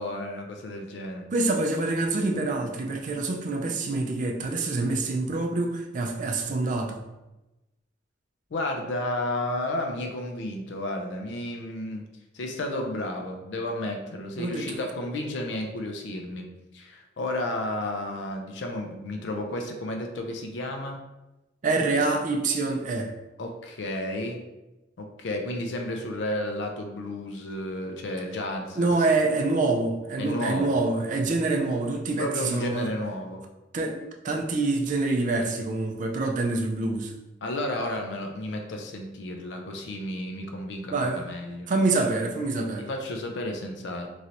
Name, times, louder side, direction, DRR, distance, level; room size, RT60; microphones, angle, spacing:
voice 1, 0.0-1.3 8.5-12.1 12.3-16.5 16.7-21.0 23.4-24.4 25.0-29.1 30.2-30.8 32.2-33.4 37.4-41.7 42.8-44.1, left 1 dB, 65° left, 3 dB, 0.4 m, -32 dB
voice 2, 1.3-7.0 14.4-14.8 21.6-23.1 28.8-32.9 33.7-37.1 40.9-41.2 41.7-42.9, right 3 dB, 40° right, 2 dB, 0.4 m, -26 dB
3.1 x 2.5 x 2.8 m, 1.0 s
head